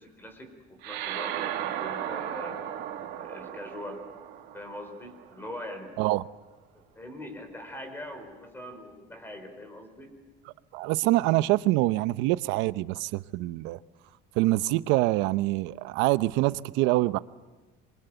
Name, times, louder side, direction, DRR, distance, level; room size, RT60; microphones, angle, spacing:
voice 1, 0.0-2.6 3.2-4.0 4.5-5.9 6.7-10.1, left 1 dB, 10° left, 4.7 m, -42 dB
sound 1, 0.8-5.6, right 11 dB, 65° right, 2.8 m, -36 dB
voice 2, 10.7-13.8 14.3-17.2, right 18 dB, 80° right, 0.8 m, -25 dB
27.0 x 23.5 x 9.2 m
cardioid pair, 155°, 19 cm